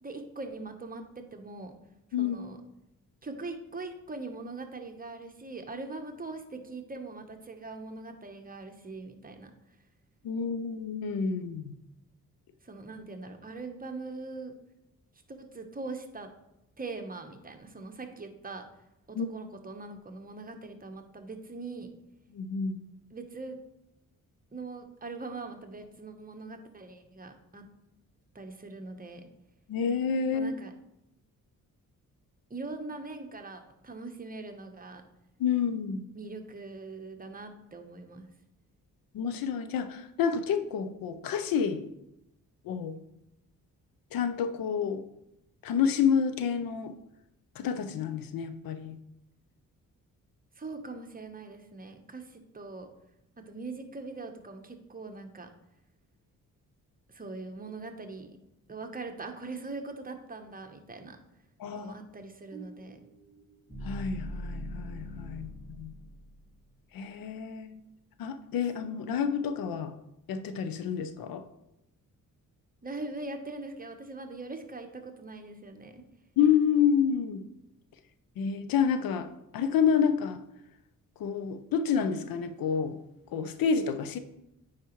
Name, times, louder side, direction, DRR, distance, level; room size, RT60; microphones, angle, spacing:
voice 1, 0.0-1.7 2.2-2.6 3.2-9.5 12.6-14.5 15.3-16.3 16.8-18.7 19.1-21.9 23.1-23.6 24.5-27.6 28.3-29.3 30.3-30.7 32.5-35.0 36.1-38.3 50.6-52.9 53.4-55.5 57.1-58.4 58.7-61.2 61.7-63.0 72.8-76.0, right 3 dB, 25° right, 5 dB, 1.0 m, -41 dB
voice 2, 10.2-11.7 19.1-19.3 22.3-22.8 29.7-30.5 35.4-36.0 39.1-41.8 42.6-43.0 44.1-45.0 45.6-46.9 47.6-49.0 61.6-61.9 63.8-65.9 66.9-67.8 68.2-69.9 70.3-71.4 76.4-77.4 78.4-79.3 79.5-80.4 81.2-83.0 83.3-84.2, left 7 dB, 90° left, 10 dB, 0.6 m, -29 dB
sound 1, 62.5-66.6, equal, 5° left, 1.7 m, -42 dB
9.1 x 4.9 x 3.1 m, 0.87 s
cardioid pair, 80°, 34 cm